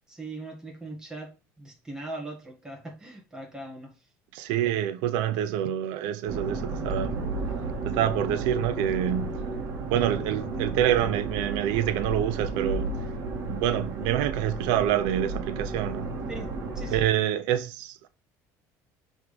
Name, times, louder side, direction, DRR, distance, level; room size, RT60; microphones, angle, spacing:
voice 1, 0.1-3.9 16.3-17.0, right 2 dB, 10° right, 1.7 m, -40 dB
voice 2, 4.3-7.2 7.8-12.9 13.4-16.1 16.9-18.1, right 11 dB, 80° right, 0.6 m, -27 dB
sound 1, 6.3-17.1, right 3 dB, 45° right, 1.9 m, -33 dB
6.4 x 3.6 x 5.0 m
cardioid pair, 160°, 7 cm